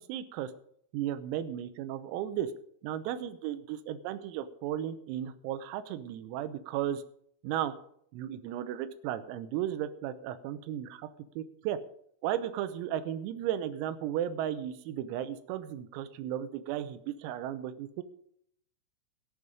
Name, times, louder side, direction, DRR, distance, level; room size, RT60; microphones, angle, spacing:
voice 1, 0.1-0.5 0.9-2.5 2.8-7.0 7.4-7.7 8.1-11.1 11.4-11.8 12.2-18.0, right 11 dB, 90° right, 12 dB, 3.6 m, -35 dB
20.5 x 7.3 x 5.0 m, 0.68 s
omnidirectional pair, 6.0 m